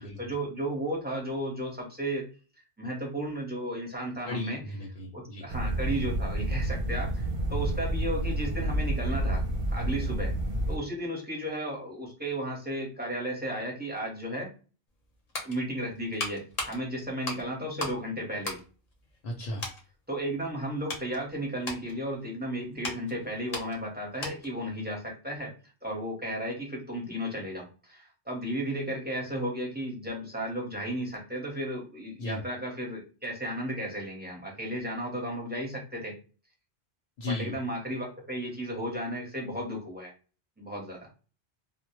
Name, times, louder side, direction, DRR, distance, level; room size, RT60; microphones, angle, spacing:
voice 1, 0.0-2.3 2.8-4.6 5.1-9.4 9.7-10.3 10.7-14.5 15.4-18.6 20.1-25.5 25.8-36.1 37.2-40.1 40.6-41.1, right 1 dB, 10° right, -2 dB, 0.6 m, -34 dB
voice 2, 4.3-5.4 19.2-19.7 32.2-32.4 37.2-37.5, left 2 dB, 70° left, 0 dB, 0.8 m, -35 dB
sound 1, 5.5-10.8, right 1 dB, 60° right, 0.7 m, -29 dB
sound 2, 14.9-18.0 18.4-19.3 19.6-19.8 20.4-24.6 24.9-25.1, left 2 dB, 45° left, 0.7 m, -39 dB
2.1 x 2.0 x 2.8 m, 0.36 s
omnidirectional pair, 1.1 m